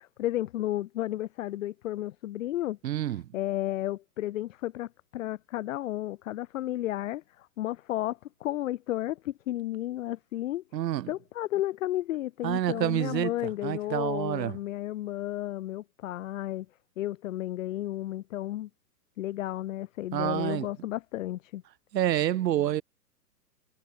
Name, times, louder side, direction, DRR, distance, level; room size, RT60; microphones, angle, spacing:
voice 1, 0.0-2.8 3.3-10.6 11.1-16.7 17.0-18.7 19.2-21.6, left 14 dB, 55° left, 0.6 m, -33 dB
voice 2, 2.8-3.3 10.7-11.1 12.4-13.3 13.6-14.6 20.1-20.9 21.9-22.8, right 12 dB, 85° right, 0.7 m, -28 dB
hypercardioid pair, 135°, 49 cm